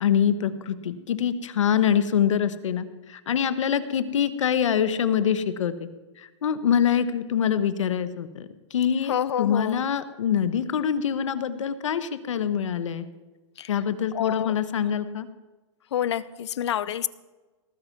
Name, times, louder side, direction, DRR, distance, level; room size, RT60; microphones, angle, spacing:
voice 1, 0.0-5.9 6.2-13.1 13.7-15.3, left 8 dB, 80° left, 13 dB, 1.2 m, -25 dB
voice 2, 9.0-9.8 13.6-13.8 14.1-14.5 15.9-17.1, left 10 dB, 60° left, 18 dB, 0.7 m, -28 dB
18.5 x 9.2 x 6.0 m, 1.2 s
hypercardioid pair, 170°, 16 cm